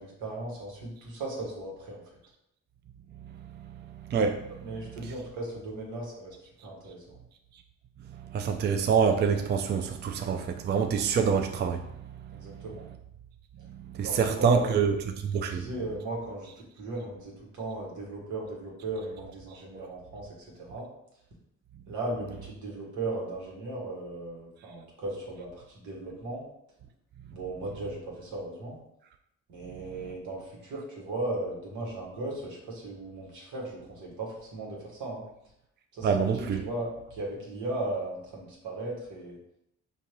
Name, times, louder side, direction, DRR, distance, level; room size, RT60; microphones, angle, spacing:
voice 1, 0.0-2.0 4.6-6.3 6.6-7.2 12.3-12.8 14.0-14.7 15.3-20.3 20.6-20.9 21.9-26.4 27.3-28.8 29.5-35.2 35.9-39.4, right 2 dB, 80° right, 1.5 m, -36 dB
voice 2, 3.2-5.1 8.1-12.6 13.7-15.7 19.7-19.8 29.7-30.1 36.0-36.6, right 6 dB, 35° right, 0.4 m, -28 dB
5.1 x 2.8 x 3.0 m
cardioid pair, 90°, 30 cm